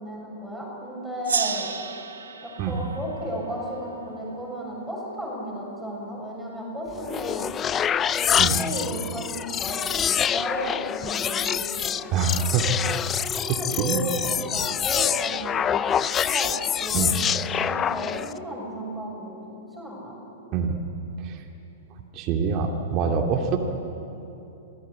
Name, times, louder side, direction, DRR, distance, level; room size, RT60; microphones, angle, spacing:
voice 1, 0.0-1.7 2.4-7.5 8.1-12.2 13.3-15.8 16.2-16.6 16.8-17.2 17.5-19.4 19.7-20.2, equal, ahead, -4 dB, 7.2 m, -34 dB
Gong, 1.2-4.4, right 6 dB, 80° right, 1.7 m, -33 dB
sound 1, 6.9-18.4, left 8 dB, 25° left, 0.5 m, -26 dB
voice 2, 12.1-12.7 13.8-14.0 16.9-17.2 20.5-20.8 21.2-21.4 22.1-23.6, right 6 dB, 40° right, 2 dB, 2.5 m, -25 dB
27.0 x 17.5 x 8.7 m, 2.9 s
figure-of-eight pair, 105°, 0 cm